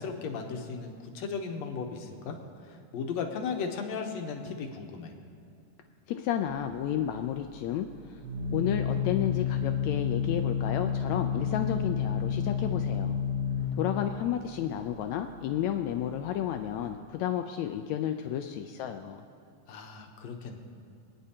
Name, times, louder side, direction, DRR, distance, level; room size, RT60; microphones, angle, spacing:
voice 1, 0.0-5.1 19.7-20.6, left 5 dB, 70° left, 3 dB, 1.9 m, -36 dB
voice 2, 6.1-7.9 8.5-13.2 13.8-19.2, left 10 dB, 85° left, 6 dB, 1.6 m, -32 dB
Organ, 6.5-16.9, left 7 dB, 80° right, 2.6 m, -31 dB
25.5 x 9.6 x 2.8 m, 2.5 s
omnidirectional pair, 3.7 m